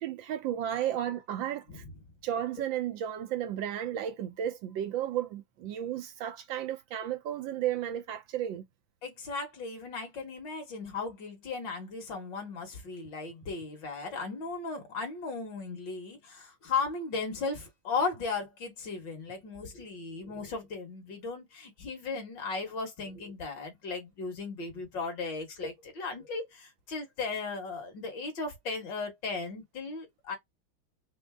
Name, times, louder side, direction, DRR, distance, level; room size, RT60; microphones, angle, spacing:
voice 1, 0.0-1.8 2.2-8.6, right 11 dB, 75° right, 1.3 m, -33 dB
voice 2, 9.0-30.4, left 4 dB, 60° left, 2.1 m, -36 dB
5.2 x 2.0 x 3.5 m
omnidirectional pair, 2.3 m